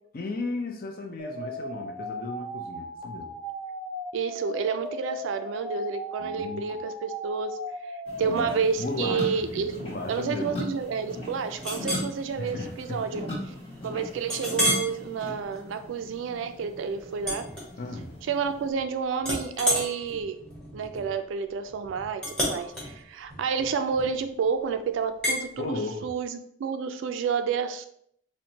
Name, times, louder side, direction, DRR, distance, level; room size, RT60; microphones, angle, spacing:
voice 1, 0.1-3.4 6.2-6.6 8.2-8.5 8.8-10.6 12.4-13.0 17.8-18.1 25.6-26.1, left 2 dB, 50° left, 3 dB, 0.5 m, -35 dB
sound 1, 1.2-8.5, equal, 30° right, 0.6 m, -37 dB
voice 2, 4.1-7.6 7.8-13.5 13.8-17.4 18.3-20.4 20.7-25.7 26.0-27.9, right 6 dB, 90° right, 8 dB, 0.3 m, -30 dB
sound 2, 8.1-18.7, left 1 dB, 30° left, 1.4 m, -39 dB
Chink clink, 11.6-12.1 12.6-12.8 13.3-13.4 14.3-14.9 15.5-15.7 17.2-18.2 18.5-18.9 19.2-24.3 25.2-25.4, equal, 5° left, 0.9 m, -31 dB
4.3 x 2.2 x 2.7 m, 0.68 s
head